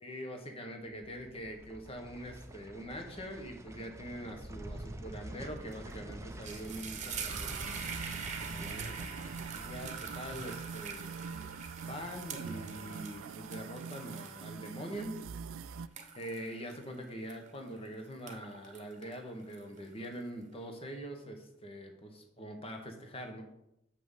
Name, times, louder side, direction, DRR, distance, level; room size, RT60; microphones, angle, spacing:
voice 1, 0.0-7.9 8.4-11.1 11.8-15.2 16.1-23.4, equal, 25° left, 3 dB, 1.3 m, -44 dB
sound 1, 0.9-14.1 14.4-14.5, right 1 dB, 15° right, 0.6 m, -48 dB
sound 2, 5.7-5.9 6.2-17.8 18.1-20.1, right 6 dB, 35° right, 1.2 m, -44 dB
sound 3, 7.3-15.9, right 6 dB, 75° right, 0.4 m, -44 dB
6.7 x 6.1 x 7.3 m, 0.84 s
head